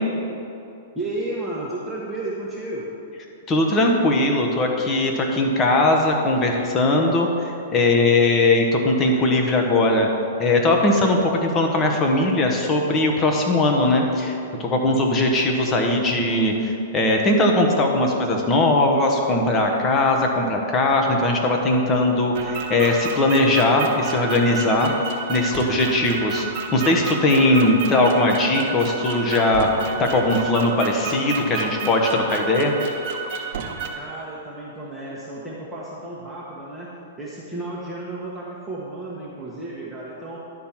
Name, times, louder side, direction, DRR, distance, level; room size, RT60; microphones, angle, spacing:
voice 1, 0.9-2.9 34.0-40.4, right 2 dB, ahead, -8 dB, 1.4 m, -33 dB
voice 2, 3.5-10.1 10.4-24.9 25.3-26.5 26.7-29.7 30.0-32.8, left 2 dB, 25° left, 1 dB, 1.3 m, -20 dB
sound 1, 22.3-33.9, right 5 dB, 50° right, 1.2 m, -31 dB
11.5 x 4.5 x 7.4 m, 2.8 s
hypercardioid pair, 135°, 0 cm